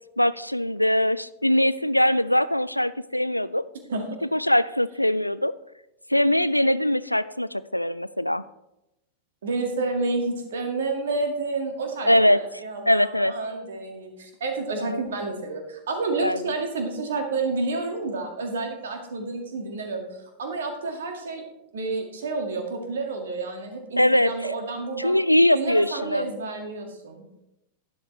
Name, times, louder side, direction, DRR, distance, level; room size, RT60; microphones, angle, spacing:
voice 1, 0.2-3.6 4.3-5.5 6.1-8.4 12.1-12.4 12.9-13.3 14.8-15.0 16.2-16.4 24.0-24.3 25.0-26.3, left 1 dB, 90° left, 17 dB, 0.3 m, -21 dB
voice 2, 9.4-20.0 20.4-21.4 21.7-25.2 25.5-27.4, right 3 dB, 65° right, 3 dB, 2.0 m, -30 dB
12.0 x 10.0 x 3.3 m, 0.90 s
figure-of-eight pair, 90°, 0 cm